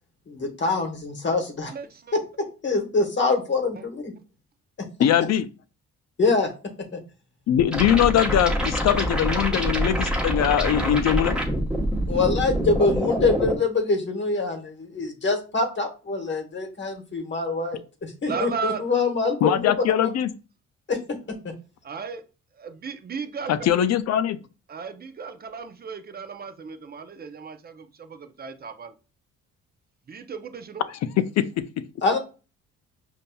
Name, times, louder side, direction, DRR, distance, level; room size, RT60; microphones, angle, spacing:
voice 1, 0.3-1.7 2.6-4.1 6.2-6.5 6.9-7.0 12.1-19.7 20.9-21.0 32.0-32.2, left 3 dB, 40° left, 1.0 m, -24 dB
voice 2, 1.7-2.2 3.8-3.9 18.2-18.8 21.8-22.2 22.6-23.5 24.7-28.9 30.1-30.8, right 6 dB, 30° right, 0.5 m, -35 dB
voice 3, 5.0-5.4 7.5-11.4 19.4-20.3 23.5-24.4 31.4-31.8, left 10 dB, 60° left, 0.5 m, -22 dB
sound 1, 7.7-13.6, equal, 5° right, 1.0 m, -25 dB
5.4 x 2.6 x 2.2 m
cardioid pair, 90°, 30 cm